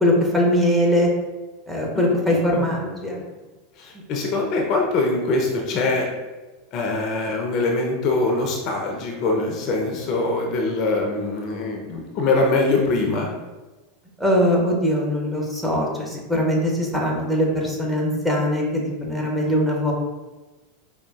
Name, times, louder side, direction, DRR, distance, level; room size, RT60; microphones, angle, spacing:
voice 1, 0.0-1.1 1.7-3.2 14.2-19.9, equal, 5° right, -2 dB, 0.9 m, -21 dB
voice 2, 2.3-2.7 3.8-6.1 6.7-13.3, left 3 dB, 45° left, 1 dB, 0.6 m, -23 dB
4.8 x 2.3 x 2.3 m, 1.2 s
figure-of-eight pair, 85°, 0 cm